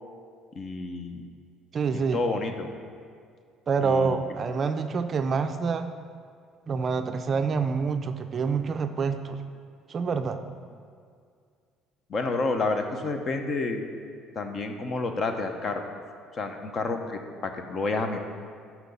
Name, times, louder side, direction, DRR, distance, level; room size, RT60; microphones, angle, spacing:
voice 1, 0.6-1.2 1.9-2.7 3.8-4.2 12.1-13.9 14.3-15.8 16.4-18.2, left 3 dB, 40° left, 5 dB, 0.8 m, -29 dB
voice 2, 1.7-2.2 3.7-5.9 6.7-9.4 9.9-10.4, right 5 dB, 35° right, 7 dB, 0.4 m, -27 dB
6.0 x 5.7 x 7.0 m, 2.1 s
cardioid pair, 125°, 0 cm